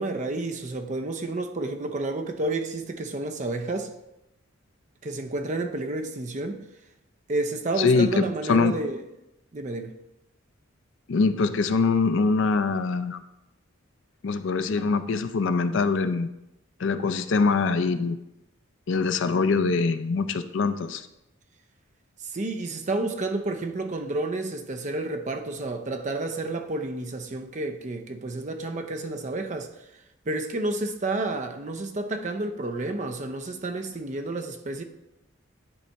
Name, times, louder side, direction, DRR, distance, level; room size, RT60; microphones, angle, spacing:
voice 1, 0.0-3.9 5.0-6.6 7.3-9.0 9.5-9.9 22.2-29.7 30.3-34.8, right 2 dB, 35° right, 0.5 m, -30 dB
voice 2, 7.8-8.8 11.1-13.2 14.2-16.3 16.8-18.2 18.9-21.1, left 4 dB, 60° left, 0.4 m, -23 dB
10.0 x 4.1 x 3.4 m
head